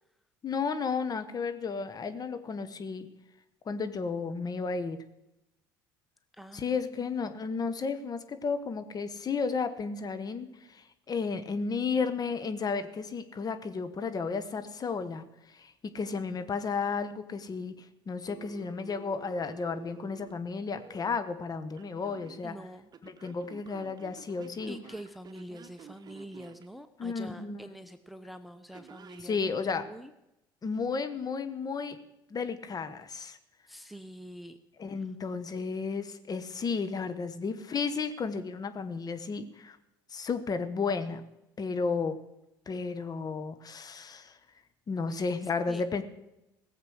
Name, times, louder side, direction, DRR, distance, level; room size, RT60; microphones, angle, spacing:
voice 1, 0.4-3.1 3.6-5.0 6.5-17.7 18.1-22.6 23.0-24.8 27.0-27.6 29.2-29.8 30.6-32.0 32.3-33.4 34.8-39.8 40.1-41.2 41.6-42.2 42.7-44.4 44.9-46.0, left 5 dB, 35° left, 9 dB, 1.3 m, -33 dB
voice 2, 6.4-6.8 22.4-22.9 24.7-30.1 33.7-34.6 45.7-45.9, right 1 dB, ahead, 10 dB, 0.8 m, -45 dB
Telephone, 18.3-21.0 21.7-22.4 22.9-26.7 28.7-29.3, right 8 dB, 40° right, 1.2 m, -51 dB
17.0 x 7.4 x 6.4 m, 0.91 s
hypercardioid pair, 65°, 11 cm